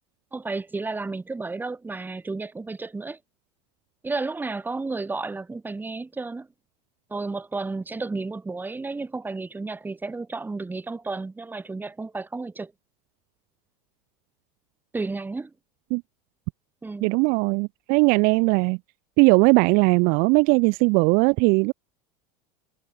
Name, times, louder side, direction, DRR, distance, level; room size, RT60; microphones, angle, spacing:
voice 1, 0.3-3.2 4.0-6.5 7.1-12.7 14.9-15.5 16.8-17.1, right 3 dB, 10° right, 1.7 m, -32 dB
voice 2, 17.0-18.8 19.2-21.7, right 30 dB, 55° right, 0.4 m, -19 dB
supercardioid pair, 130°, 18 cm